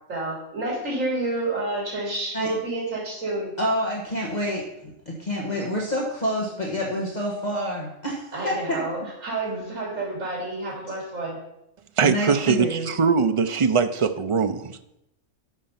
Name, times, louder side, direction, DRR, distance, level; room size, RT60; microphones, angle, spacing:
voice 1, 0.1-3.5 8.3-11.4, right 2 dB, 80° right, -3 dB, 3.4 m, -29 dB
voice 2, 3.6-8.8 12.0-12.9, equal, 35° left, -3 dB, 1.7 m, -28 dB
voice 3, 12.0-14.6, right 5 dB, 50° right, 9 dB, 0.3 m, -21 dB
13.0 x 5.5 x 5.7 m, 0.85 s
omnidirectional pair, 1.3 m